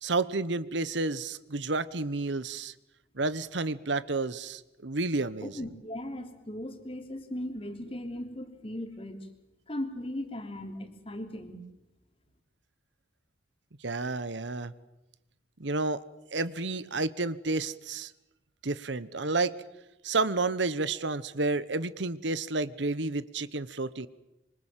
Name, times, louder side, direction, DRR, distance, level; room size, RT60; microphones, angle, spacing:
voice 1, 0.0-2.7 3.1-5.6 13.8-14.7 15.6-16.0 16.3-18.1 18.6-19.5 20.0-24.1, right 3 dB, 70° right, 16 dB, 1.1 m, -30 dB
voice 2, 5.4-9.2 9.7-11.6, left 1 dB, 30° left, 5 dB, 3.1 m, -38 dB
27.0 x 25.0 x 7.5 m, 0.93 s
head